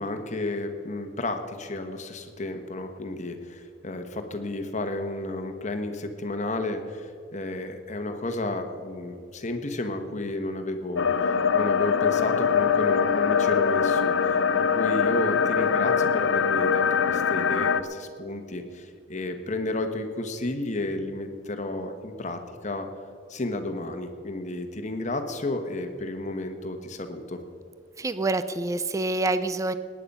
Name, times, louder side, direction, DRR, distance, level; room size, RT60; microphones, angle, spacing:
voice 1, 0.0-22.9 23.3-27.4, left 2 dB, 40° left, 6 dB, 1.2 m, -32 dB
sound 1, 11.0-17.8, left 6 dB, 80° left, 0.6 m, -23 dB
voice 2, 28.0-29.7, right 2 dB, 15° right, 12 dB, 0.4 m, -26 dB
18.5 x 10.0 x 5.5 m, 2.3 s
head